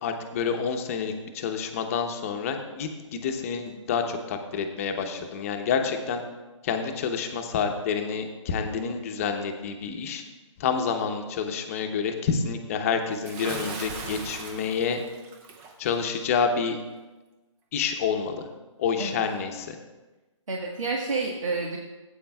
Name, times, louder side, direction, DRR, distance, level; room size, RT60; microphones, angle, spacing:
voice 1, 0.0-6.2 6.6-10.2 10.6-15.0 15.8-16.8 17.7-18.5 18.8-19.8, left 6 dB, 25° left, 5 dB, 0.8 m, -28 dB
Bathtub (filling or washing) / Splash splatter, 13.2-15.8, right 4 dB, 10° right, 0.3 m, -38 dB
voice 2, 20.5-21.8, right 3 dB, 80° right, -2 dB, 1.5 m, -29 dB
16.0 x 8.5 x 2.3 m, 1.2 s
hypercardioid pair, 155°, 17 cm